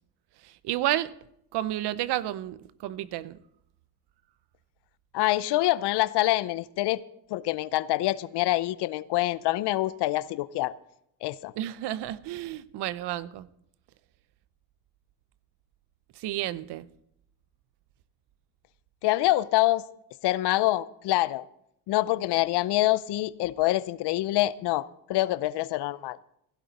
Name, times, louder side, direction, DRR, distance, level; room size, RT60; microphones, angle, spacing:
voice 1, 0.4-1.1 1.5-3.4 11.6-13.5 16.2-16.9, right 14 dB, 80° right, 0.7 m, -31 dB
voice 2, 5.1-7.0 7.3-10.7 11.2-11.5 19.0-19.8 20.2-21.4 21.9-26.2, left 16 dB, 80° left, 0.6 m, -26 dB
16.0 x 11.5 x 4.1 m
cardioid pair, 120°, 40 cm